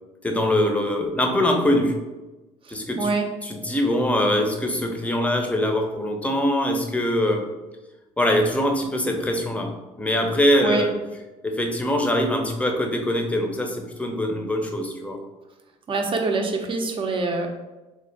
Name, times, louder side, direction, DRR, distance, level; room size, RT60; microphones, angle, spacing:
voice 1, 0.2-1.9 2.7-3.1 3.4-7.4 8.2-10.9 11.4-15.2, left 1 dB, 10° left, 3 dB, 0.6 m, -23 dB
voice 2, 2.6-3.3 10.6-10.9 15.9-17.5, right 3 dB, 35° right, 3 dB, 0.7 m, -25 dB
3.2 x 2.5 x 3.9 m, 1.1 s
supercardioid pair, 90°, 14 cm